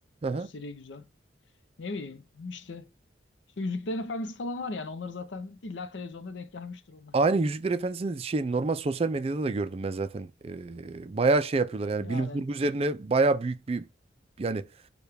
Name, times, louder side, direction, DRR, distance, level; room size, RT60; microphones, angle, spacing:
voice 1, 0.3-1.1 1.8-2.9 3.6-7.1 12.0-12.4, left 2 dB, 80° left, 0.6 m, -37 dB
voice 2, 7.1-13.9 14.4-14.7, right 3 dB, 35° right, 0.4 m, -27 dB
6.6 x 2.3 x 3.3 m
head